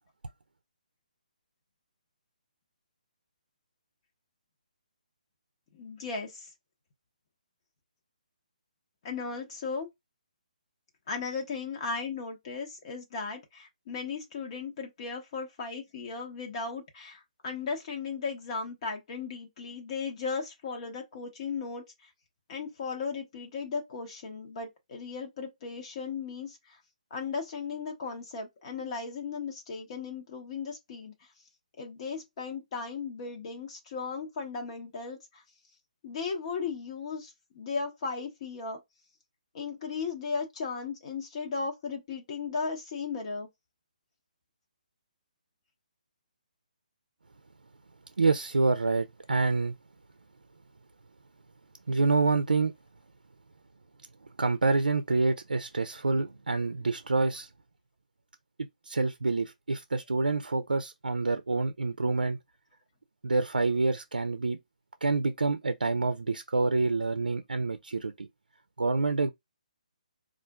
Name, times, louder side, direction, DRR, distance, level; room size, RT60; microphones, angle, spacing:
voice 1, 5.7-6.5 9.0-9.9 11.1-22.1 22.5-26.8 27.1-31.1 31.8-35.4 36.0-38.8 39.5-43.5, left 5 dB, 40° left, 1.0 m, -36 dB
voice 2, 48.2-49.7 51.9-52.7 54.4-57.5 58.8-62.4 63.2-64.6 65.0-68.3 68.8-69.3, right 3 dB, 90° right, 0.4 m, -27 dB
4.3 x 2.4 x 2.3 m
hypercardioid pair, 150°, 5 cm